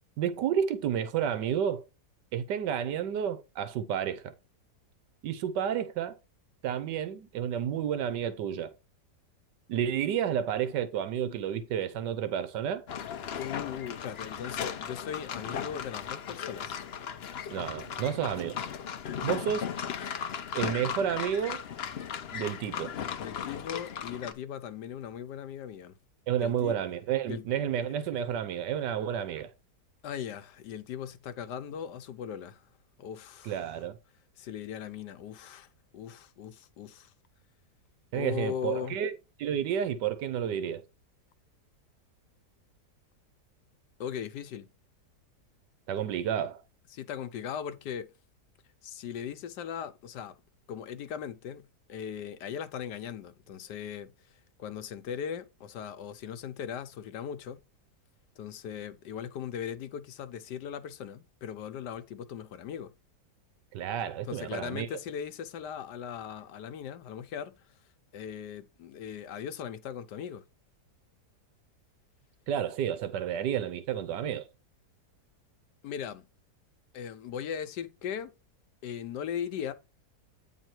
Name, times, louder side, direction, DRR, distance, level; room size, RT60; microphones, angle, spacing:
voice 1, 0.2-1.8 2.3-4.3 5.2-6.2 6.6-8.7 9.7-12.8 17.5-18.6 19.2-19.7 20.5-21.6 22.3-23.0 26.3-29.5 33.4-34.0 38.1-39.1 39.4-40.8 45.9-46.6 63.7-64.9 72.5-74.5, right 9 dB, 85° right, 1.4 m, -31 dB
sound 1, 12.9-24.3, left 8 dB, 60° left, 0.6 m, -37 dB
voice 2, 13.4-16.8 23.2-26.0 26.4-26.7 27.3-27.4 30.0-32.7 33.0-33.7 34.4-35.7 35.9-37.1 38.1-39.0 44.0-44.7 46.9-48.1 48.8-50.4 50.7-54.1 54.6-57.6 58.4-62.9 64.3-67.5 68.1-70.4 75.8-76.2 76.9-78.3 78.8-79.7, left 8 dB, 80° left, 1.4 m, -39 dB
9.1 x 3.5 x 4.4 m
omnidirectional pair, 1.8 m